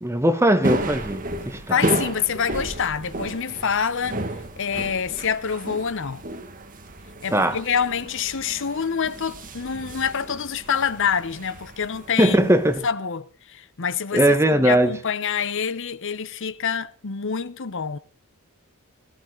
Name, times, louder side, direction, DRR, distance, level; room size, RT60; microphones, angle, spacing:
voice 1, 0.0-1.8 7.3-7.6 12.2-12.8 14.1-14.9, right 1 dB, 15° right, 1.2 m, -19 dB
sound 1, 0.6-12.9, right 1 dB, 40° right, 1.7 m, -33 dB
voice 2, 1.7-4.2 4.6-6.2 7.2-12.5 12.8-18.0, left 7 dB, 60° left, 0.8 m, -26 dB
16.5 x 15.0 x 3.9 m
head